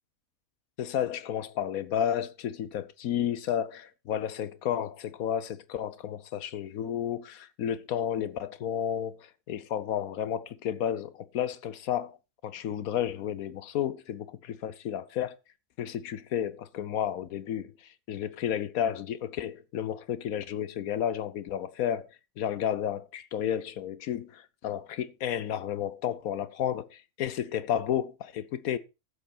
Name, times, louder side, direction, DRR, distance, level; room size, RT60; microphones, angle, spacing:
voice 1, 0.8-12.2 12.4-15.4 15.8-17.7 18.1-22.1 22.4-28.8, left 10 dB, 70° left, 1.1 m, -32 dB
11.5 x 7.8 x 4.3 m
omnidirectional pair, 1.6 m